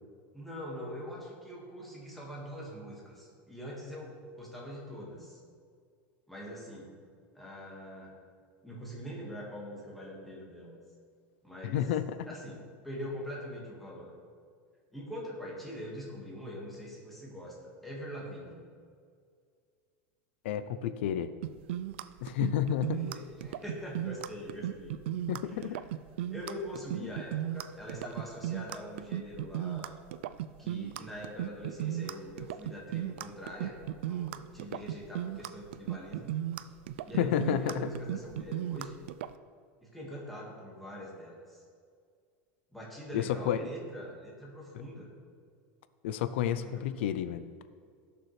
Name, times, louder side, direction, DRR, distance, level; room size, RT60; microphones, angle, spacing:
voice 1, 0.3-5.4 6.3-6.9 7.3-8.1 8.6-10.7 11.4-11.8 12.2-14.1 14.9-17.6 17.8-18.6 22.9-25.0 25.5-25.8 26.3-30.0 30.6-36.3 37.0-39.0 39.8-41.6 42.7-45.1 46.4-47.0, equal, ahead, -4 dB, 1.7 m, -43 dB
voice 2, 11.6-12.3 20.4-21.3 22.2-23.0 25.3-25.8 27.0-27.1 37.2-37.9 43.1-43.7 44.7-44.8 46.0-47.4, left 10 dB, 90° left, 13 dB, 0.5 m, -31 dB
sound 1, 21.4-39.3, right 12 dB, 90° right, 0.4 m, -36 dB
15.5 x 6.8 x 3.2 m, 2.1 s
supercardioid pair, 175°, 6 cm